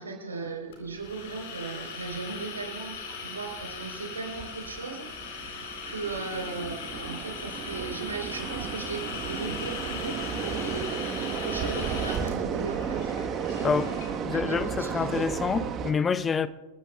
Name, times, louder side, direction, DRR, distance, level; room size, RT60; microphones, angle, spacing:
voice 1, 0.0-3.0 3.2-13.1 13.5-15.3, right 4 dB, 75° right, 3.9 m, -37 dB
sound 1, 0.7-14.2, left 5 dB, 55° left, 3.6 m, -39 dB
sound 2, 0.8-15.9, right 7 dB, 30° right, 1.3 m, -34 dB
voice 2, 14.2-16.5, left 5 dB, 20° left, 0.6 m, -27 dB
28.0 x 14.0 x 2.3 m
figure-of-eight pair, 90°, 0 cm